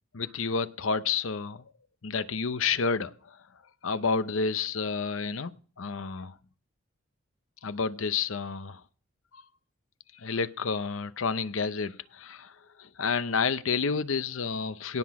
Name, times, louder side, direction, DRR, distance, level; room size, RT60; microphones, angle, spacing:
voice 1, 0.1-1.6 2.0-3.1 3.8-5.5 5.8-6.3 7.6-8.8 9.3-9.4 10.2-12.5 12.8-15.0, left 5 dB, 70° left, 0.7 m, -30 dB
17.5 x 6.1 x 4.8 m
head